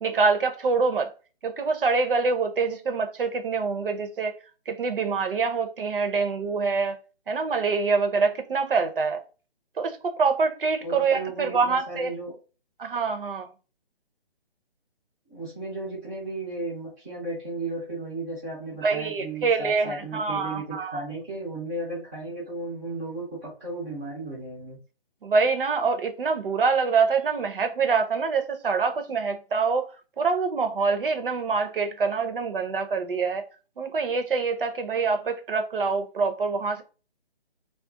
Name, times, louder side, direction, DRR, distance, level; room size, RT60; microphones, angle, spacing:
voice 1, 0.0-1.1 1.4-4.3 4.7-6.9 7.3-9.2 9.8-12.1 12.8-13.5 18.8-21.0 25.2-29.9 30.2-33.4 33.8-36.8, right 4 dB, 60° right, 0.7 m, -25 dB
voice 2, 10.8-12.3 15.3-24.8, right 2 dB, 5° right, 0.5 m, -35 dB
2.4 x 2.3 x 3.6 m
figure-of-eight pair, 150°, 31 cm